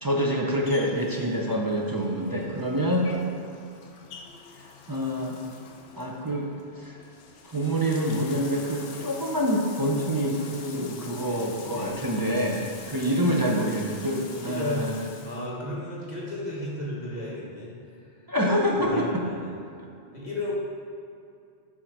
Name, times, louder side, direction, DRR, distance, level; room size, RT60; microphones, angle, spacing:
voice 1, 0.0-3.1 4.9-5.4 6.0-6.5 6.8-7.0 7.4-15.0 18.3-19.1, equal, 25° right, -1 dB, 0.5 m, -26 dB
Bathtub (filling or washing), 0.6-15.5, left 5 dB, 65° left, 0.8 m, -45 dB
voice 2, 11.2-11.9 14.5-14.9 15.2-17.8 18.0-18.1 18.9-19.5 20.1-20.5, left 1 dB, 40° left, -7 dB, 1.6 m, -35 dB
7.4 x 3.6 x 5.4 m, 2.5 s
omnidirectional pair, 1.1 m